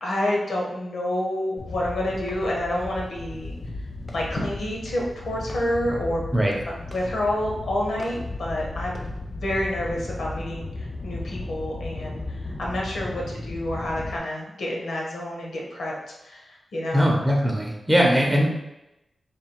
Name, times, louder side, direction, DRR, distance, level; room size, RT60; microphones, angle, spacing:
voice 1, 0.0-3.5 4.1-6.2 6.7-17.1, left 1 dB, 80° left, -2 dB, 1.0 m, -29 dB
sound 1, 1.6-14.2, left 2 dB, 25° left, 0.3 m, -35 dB
voice 2, 16.9-18.5, equal, 15° right, -1 dB, 0.7 m, -20 dB
3.3 x 2.4 x 4.3 m, 0.91 s
wide cardioid pair, 160°, 0 cm